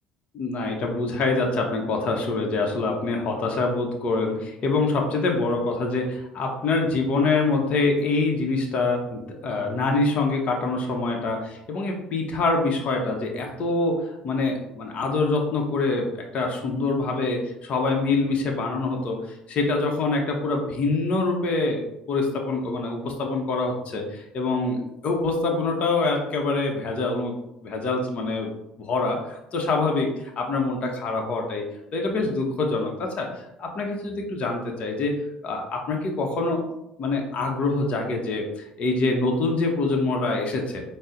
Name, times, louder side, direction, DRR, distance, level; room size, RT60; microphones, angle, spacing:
voice 1, 0.3-27.3 27.6-28.5 28.8-31.6 31.9-35.1 35.4-36.6 37.0-40.8, left 3 dB, 50° left, 1 dB, 0.7 m, -25 dB
4.0 x 2.0 x 3.7 m, 0.87 s
supercardioid pair, 75°, 3 cm